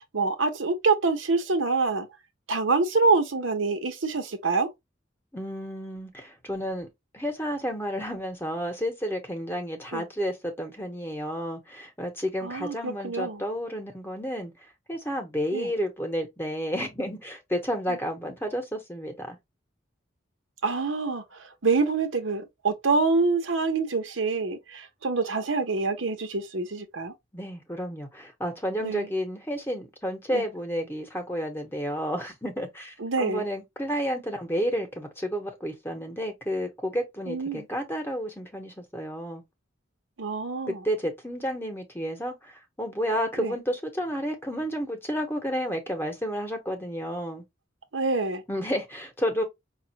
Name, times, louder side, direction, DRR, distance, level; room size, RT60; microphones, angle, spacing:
voice 1, 0.1-2.1 2.5-4.7 9.9-10.0 12.4-13.4 15.5-15.7 20.6-21.2 21.6-24.6 25.0-27.1 28.8-29.1 30.3-30.4 33.0-33.4 37.3-37.6 40.2-40.8 43.4-43.5 47.9-48.4, right 4 dB, 85° right, 0.9 m, -26 dB
voice 2, 5.3-6.9 7.1-14.5 14.9-19.4 27.3-39.4 40.7-42.3 42.8-47.4 48.5-49.4, equal, 10° left, 0.9 m, -31 dB
5.2 x 2.4 x 2.9 m
head